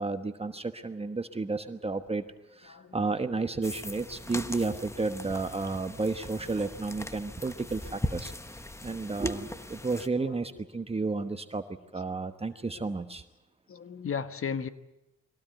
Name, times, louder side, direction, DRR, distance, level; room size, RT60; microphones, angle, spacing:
voice 1, 0.0-2.2 2.6-8.3 8.8-11.6 11.9-13.2, right 3 dB, 20° right, 8 dB, 1.1 m, -32 dB
voice 2, 2.6-3.2 8.8-8.9 9.8-10.6 13.7-14.7, left 6 dB, 45° left, 11 dB, 1.4 m, -37 dB
sound 1, 3.6-10.1, left 1 dB, 10° left, 1.1 m, -40 dB
22.5 x 17.5 x 9.1 m, 0.97 s
cardioid pair, 90°, 30 cm